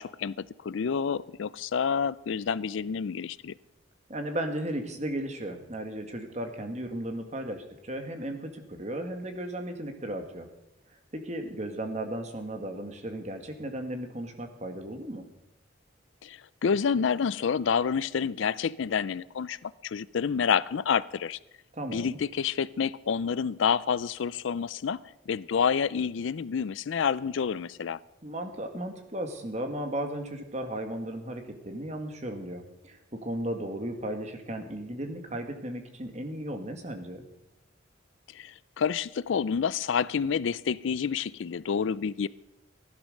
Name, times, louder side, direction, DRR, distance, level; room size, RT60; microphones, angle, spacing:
voice 1, 0.0-3.5 16.2-21.4 21.9-28.0 38.3-42.3, left 6 dB, 70° left, 20 dB, 0.4 m, -28 dB
voice 2, 4.1-10.5 11.1-15.2 21.8-22.2 28.2-37.2, right 1 dB, 35° right, 5 dB, 1.8 m, -35 dB
15.0 x 12.0 x 6.5 m, 0.89 s
head